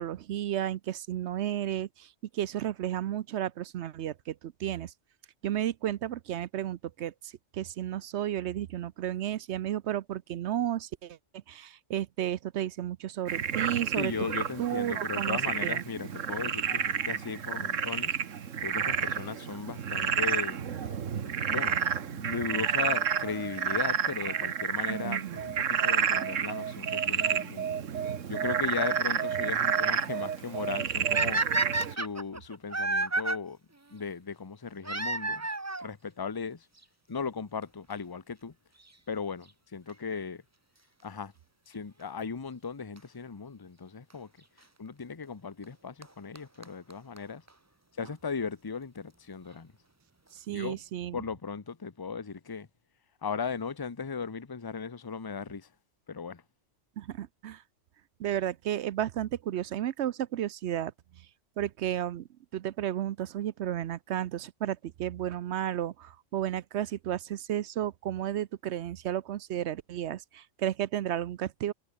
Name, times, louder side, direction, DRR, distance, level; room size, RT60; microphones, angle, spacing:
voice 1, 0.0-4.9 5.4-11.2 11.5-14.1 14.6-15.8 24.9-25.4 50.3-51.2 57.0-57.6 58.2-60.9 61.6-62.3 62.5-71.7, right 11 dB, 70° right, 0.9 m, -33 dB
Frog, 13.3-31.9, right 8 dB, 90° right, 1.5 m, -30 dB
voice 2, 14.0-18.2 18.6-27.8 28.3-31.4 31.9-33.6 33.9-35.5 35.8-36.6 37.1-38.5 39.1-40.4 41.0-41.3 41.7-44.3 44.8-47.4 48.0-49.7 50.5-50.8 51.1-52.7 53.2-55.7 56.1-56.4, left 5 dB, 20° left, 0.8 m, -37 dB
sound 1, 31.1-33.4 34.8-35.9 36.8-36.9 37.6-37.7 37.9-38.0 39.9-40.1 43.0-43.1 44.1-44.2 45.6-45.7 46.0-46.1 46.3-46.4 46.6-46.7 46.9-47.0 47.2-47.3 47.5-47.6, right 2 dB, 15° right, 0.8 m, -30 dB
omnidirectional pair, 1.3 m